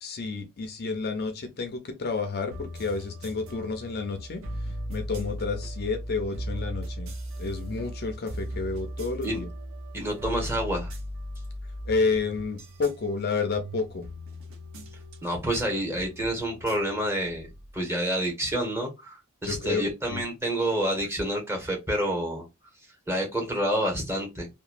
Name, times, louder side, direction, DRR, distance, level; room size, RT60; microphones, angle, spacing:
voice 1, 0.0-4.4 4.9-9.5 11.9-14.1 19.4-20.2, left 4 dB, 45° left, 0.5 m, -30 dB
sound 1, 2.5-17.8, equal, 65° right, 0.6 m, -38 dB
voice 2, 9.9-10.9 15.2-17.5 17.7-22.5 23.1-24.5, right 1 dB, 10° right, 1.0 m, -28 dB
2.9 x 2.2 x 2.4 m
head